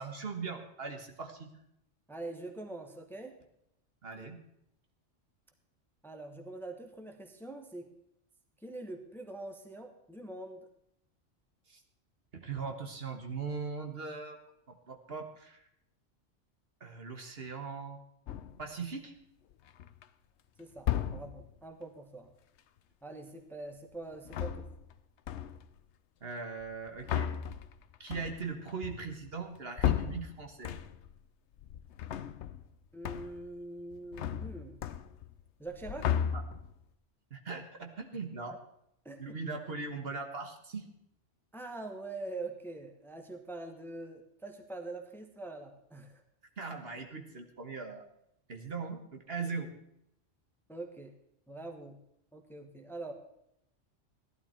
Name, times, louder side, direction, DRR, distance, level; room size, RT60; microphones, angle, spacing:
voice 1, 0.0-1.5 4.0-4.4 11.7-11.8 12.3-14.4 14.7-15.6 16.8-18.0 18.6-19.1 26.2-27.3 28.0-30.8 36.3-36.4 37.3-38.5 39.2-40.9 46.6-48.0 48.5-49.7, right 4 dB, 55° right, 5 dB, 1.5 m, -40 dB
voice 2, 2.1-3.4 6.0-7.9 8.6-10.7 20.6-22.3 23.0-24.7 32.9-34.8 35.6-36.2 39.0-39.4 41.5-46.2 50.7-51.1 51.5-52.0 52.3-53.1, right 2 dB, ahead, 4 dB, 1.2 m, -44 dB
sound 1, 18.3-18.7 19.5-20.0 20.8-21.5 24.1-25.0 25.3-25.8 26.6-31.2 31.5-32.7 33.0-33.5 33.8-35.4 35.7-36.8, left 10 dB, 70° left, 0.9 m, -35 dB
16.0 x 11.5 x 4.4 m, 0.79 s
omnidirectional pair, 1.3 m